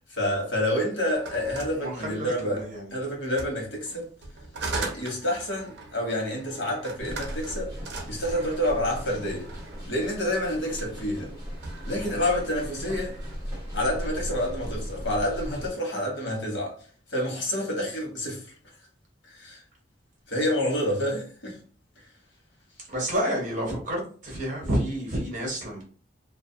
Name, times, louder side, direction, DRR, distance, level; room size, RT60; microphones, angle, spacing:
voice 1, 0.1-2.6 2.9-4.1 4.8-7.7 8.1-9.5 9.9-11.3 11.9-13.1 13.7-16.8 17.1-18.4 19.2-19.6 20.3-21.6, left 1 dB, 80° left, 1.1 m, -28 dB
sound 1, 1.0-2.6 3.3-9.9 10.6-11.1 11.4-13.4, right 3 dB, 65° right, 0.6 m, -39 dB
voice 2, 1.7-3.0 22.9-25.9, equal, 45° right, 1.1 m, -30 dB
sound 2, 7.0-15.7, equal, 20° right, 1.1 m, -37 dB
2.4 x 2.2 x 2.7 m
head